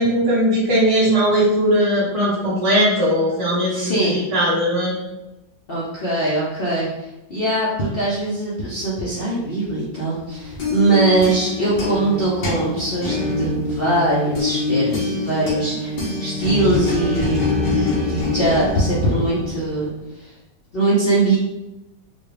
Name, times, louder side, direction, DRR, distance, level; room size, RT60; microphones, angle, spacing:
voice 1, 0.0-4.9, equal, 60° right, -6 dB, 1.5 m, -19 dB
voice 2, 3.7-4.2 5.7-20.3 20.7-21.4, right 2 dB, 60° left, -7 dB, 0.6 m, -22 dB
sound 1, 10.3-19.9, left 2 dB, 75° left, 1.6 m, -24 dB
4.0 x 2.3 x 3.3 m, 0.98 s
omnidirectional pair, 1.9 m